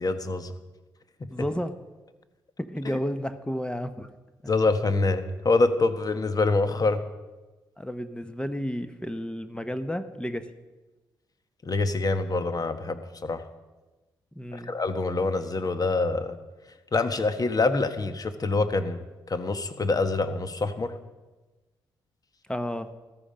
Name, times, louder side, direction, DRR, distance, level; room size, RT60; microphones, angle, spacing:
voice 1, 0.0-0.5 2.8-3.0 4.5-7.0 11.6-13.4 14.5-16.4 16.9-20.9, left 3 dB, 45° left, 9 dB, 1.5 m, -25 dB
voice 2, 1.3-1.7 2.6-4.1 7.8-10.5 14.3-14.7 22.5-22.9, equal, 10° left, 10 dB, 1.1 m, -32 dB
14.0 x 13.5 x 5.2 m, 1.2 s
supercardioid pair, 50°, 9 cm